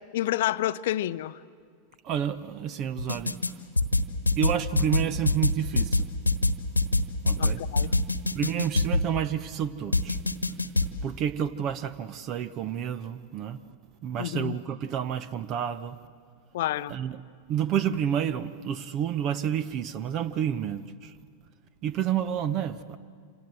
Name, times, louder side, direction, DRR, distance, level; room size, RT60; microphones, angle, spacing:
voice 1, 0.1-1.4 7.4-7.9 14.2-14.6 16.5-16.9, left 14 dB, 55° left, 0.7 m, -29 dB
voice 2, 2.0-3.3 4.4-6.1 7.2-7.6 8.3-10.2 11.0-13.6 14.0-16.0 16.9-17.2 17.5-21.1 21.8-23.0, right 9 dB, 35° right, 0.9 m, -29 dB
sound 1, 3.0-3.5 3.8-9.1 9.9-10.9, left 2 dB, 85° left, 1.3 m, -24 dB
27.5 x 27.5 x 7.8 m
figure-of-eight pair, 90°, 0 cm